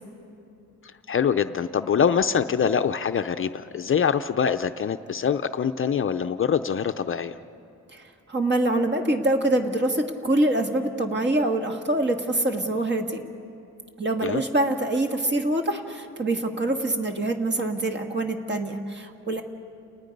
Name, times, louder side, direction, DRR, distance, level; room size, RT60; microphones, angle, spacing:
voice 1, 1.1-7.4 14.2-14.4, left 7 dB, 40° left, 9 dB, 0.5 m, -24 dB
voice 2, 7.9-13.2 14.0-19.4, right 1 dB, 35° right, 4 dB, 1.7 m, -25 dB
30.0 x 19.5 x 5.3 m, 2.7 s
wide cardioid pair, 130°, 32 cm